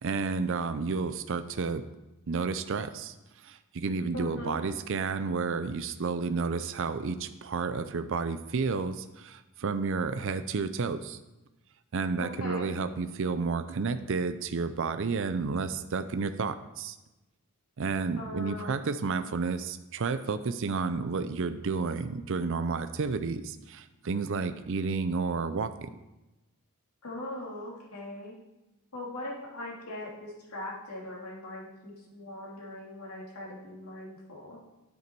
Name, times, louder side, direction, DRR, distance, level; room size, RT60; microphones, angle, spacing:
voice 1, 0.0-1.9 2.3-3.1 3.4-11.2 11.9-17.0 17.8-25.9, right 4 dB, 60° right, 11 dB, 0.5 m, -31 dB
voice 2, 4.1-4.6 12.2-12.7 18.2-18.7 27.0-28.4 28.9-34.6, left 1 dB, 80° left, -3 dB, 2.8 m, -40 dB
9.6 x 8.1 x 4.6 m, 1.0 s
head